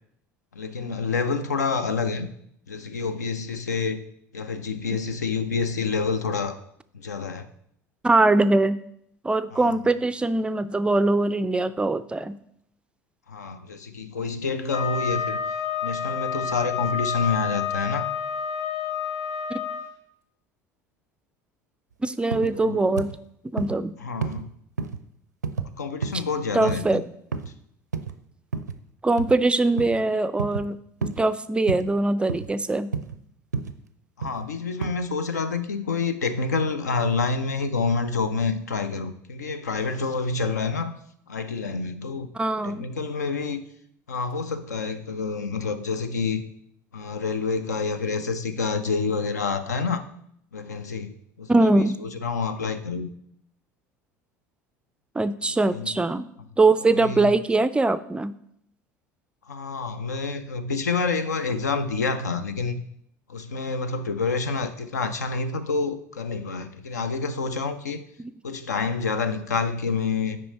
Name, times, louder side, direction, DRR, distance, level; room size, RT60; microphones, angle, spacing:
voice 1, 0.5-2.3 2.7-4.0 4.3-6.6 6.9-7.5 9.5-9.7 13.3-15.4 15.8-18.1 22.5-23.0 24.0-24.5 25.8-27.0 34.2-40.9 41.3-42.3 42.6-43.6 44.1-46.4 46.9-50.0 50.5-51.1 51.4-53.1 55.4-55.9 56.8-57.3 59.5-62.8 63.3-68.0 68.4-70.4, left 4 dB, 75° left, 0.6 m, -28 dB
voice 2, 8.0-8.8 9.2-12.3 19.5-19.6 22.0-23.1 23.5-23.9 26.5-27.0 29.0-30.8 31.0-32.9 42.3-42.8 51.5-52.0 55.2-56.3 56.6-58.3, right 2 dB, 10° right, 0.3 m, -22 dB
Wind instrument woodwind instrument, 14.7-19.8, left 7 dB, 55° left, 1.0 m, -29 dB
sound 1, 22.3-22.5 23.0-23.2 23.6-23.8 24.2-24.4 24.8-25.0 25.4-25.7 26.0-26.3 26.7-26.9 27.3-27.5 27.9-28.1 28.5-28.8 29.2-29.4 29.8-30.0 30.4-30.7 31.0-31.2 31.7-31.9 32.3-32.5 32.9-33.2 33.5-33.8 34.2-34.5 34.8-34.9, right 5 dB, 80° right, 0.4 m, -30 dB
8.5 x 5.4 x 4.2 m
figure-of-eight pair, 65°, 9 cm